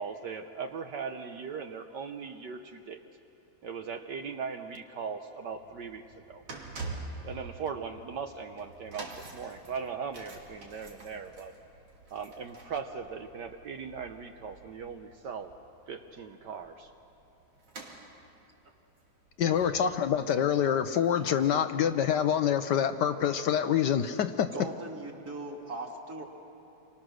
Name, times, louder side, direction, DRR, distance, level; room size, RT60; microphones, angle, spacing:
voice 1, 0.0-3.0 3.6-6.4 7.2-11.5 12.1-15.5 15.9-16.9, right 6 dB, 65° right, 5 dB, 1.4 m, -39 dB
sound 1, 5.4-21.8 22.0-22.3 23.1-23.2, right 3 dB, 80° right, 3.3 m, -47 dB
voice 2, 19.4-24.5, left 9 dB, 65° left, 9 dB, 1.2 m, -26 dB
voice 3, 24.5-26.2, right 2 dB, 50° right, 0 dB, 2.9 m, -39 dB
28.0 x 24.0 x 6.3 m, 2.8 s
omnidirectional pair, 2.2 m